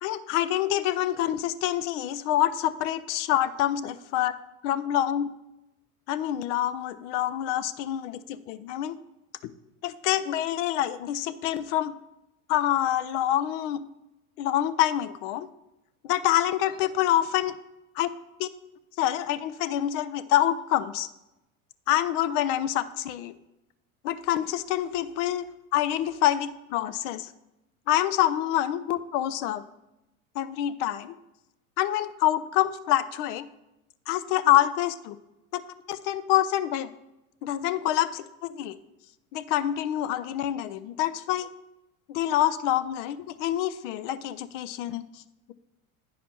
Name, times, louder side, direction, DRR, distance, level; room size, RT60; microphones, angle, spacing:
voice 1, 0.0-4.3 4.6-5.3 6.1-9.0 9.8-11.9 12.5-13.8 14.4-15.5 16.0-17.5 18.0-18.1 18.4-18.5 19.0-21.1 21.9-23.3 24.0-27.3 27.9-29.6 30.3-31.2 31.8-33.5 34.1-35.2 35.5-35.6 35.9-36.9 37.4-38.8 39.3-41.5 42.1-45.2, left 12 dB, 55° left, 13 dB, 0.6 m, -26 dB
9.4 x 5.0 x 4.5 m, 0.93 s
hypercardioid pair, 80°, 43 cm